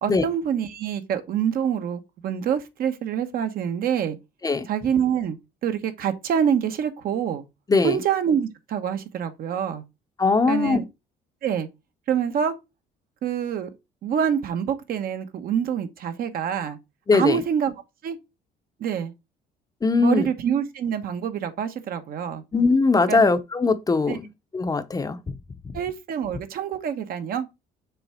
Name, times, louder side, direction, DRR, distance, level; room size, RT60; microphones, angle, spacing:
voice 1, 0.0-4.2 4.7-5.4 5.6-7.4 7.8-9.8 10.5-10.8 11.4-11.7 12.1-12.5 13.2-13.7 14.0-16.8 17.1-17.7 18.0-18.2 18.8-19.1 20.0-22.4 23.1-23.3 24.1-24.2 25.7-27.5, right 8 dB, 60° right, 1.1 m, -26 dB
voice 2, 10.2-10.8 17.1-17.4 19.8-20.3 22.5-24.2 24.5-25.2, left 4 dB, 20° left, 0.7 m, -20 dB
6.8 x 3.6 x 4.3 m
cardioid pair, 110°, 17 cm